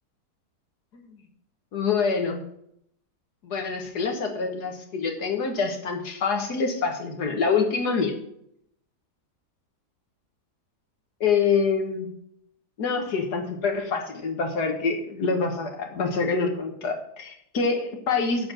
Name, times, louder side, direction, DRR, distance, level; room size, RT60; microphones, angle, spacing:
voice 1, 1.7-2.4 3.4-8.1 11.2-12.1 12.8-18.5, left 5 dB, 70° left, 3 dB, 2.0 m, -26 dB
7.8 x 7.2 x 7.6 m, 0.73 s
omnidirectional pair, 1.8 m